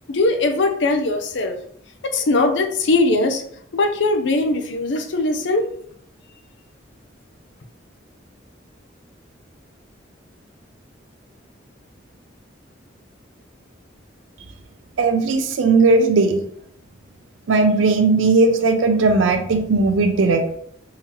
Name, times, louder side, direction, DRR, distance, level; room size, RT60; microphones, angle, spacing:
voice 1, 0.1-1.6 2.0-3.4 3.7-5.7, left 2 dB, 70° left, 7 dB, 0.5 m, -20 dB
voice 2, 15.0-16.4 17.5-20.6, right 3 dB, 85° right, 6 dB, 0.5 m, -17 dB
3.8 x 2.8 x 2.9 m, 0.66 s
head